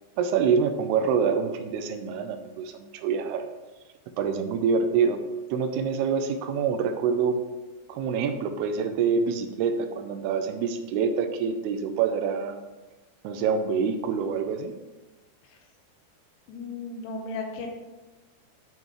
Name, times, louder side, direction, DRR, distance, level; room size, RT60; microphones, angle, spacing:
voice 1, 0.2-3.5 4.2-5.2 5.5-7.4 7.9-12.6 13.2-14.7, right 6 dB, 85° right, 7 dB, 2.6 m, -26 dB
voice 2, 16.5-17.7, left 3 dB, 85° left, 2 dB, 3.1 m, -35 dB
11.0 x 5.3 x 3.1 m, 1.1 s
omnidirectional pair, 4.6 m